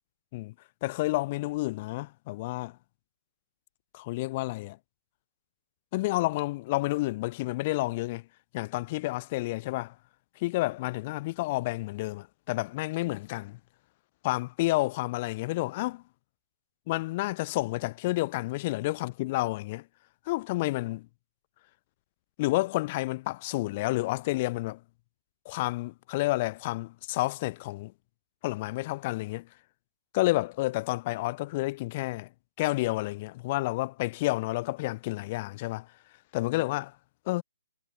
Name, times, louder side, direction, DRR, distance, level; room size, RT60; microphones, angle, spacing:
voice 1, 0.8-2.8 3.9-4.8 5.9-8.2 8.5-9.9 10.4-13.6 14.2-16.0 16.9-19.8 20.3-21.1 22.4-24.8 25.5-27.9 28.4-29.5 30.1-32.3 32.6-35.9 36.3-36.9 37.3-37.4, left 20 dB, 30° left, 2.4 m, -30 dB
hypercardioid pair, 165°, 0 cm